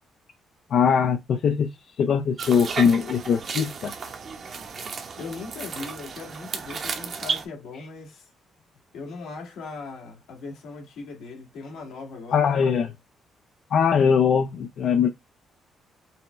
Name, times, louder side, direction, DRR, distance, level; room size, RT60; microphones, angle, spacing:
voice 1, 0.7-1.7 2.0-3.9 12.3-12.9 13.7-15.1, left 6 dB, 65° left, 0.5 m, -21 dB
sound 1, 2.4-7.5, right 5 dB, 50° right, 1.0 m, -33 dB
voice 2, 5.2-8.3 8.9-12.6, left 4 dB, 85° left, 1.8 m, -39 dB
5.5 x 2.1 x 3.2 m
cardioid pair, 90°, 0 cm